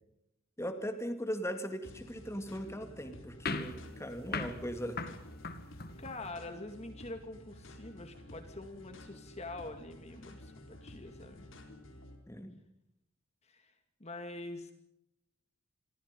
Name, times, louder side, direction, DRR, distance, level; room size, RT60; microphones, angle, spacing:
voice 1, 0.6-5.0 12.3-12.6, equal, 15° left, 7 dB, 2.6 m, -39 dB
sound 1, 1.8-12.1, left 1 dB, 70° left, 4.7 m, -52 dB
sound 2, 3.5-6.3, left 3 dB, 50° left, 2.2 m, -40 dB
voice 2, 6.0-11.5 13.4-13.7 14.0-14.7, left 2 dB, 30° left, 7 dB, 2.1 m, -45 dB
29.0 x 23.0 x 5.4 m, 0.81 s
head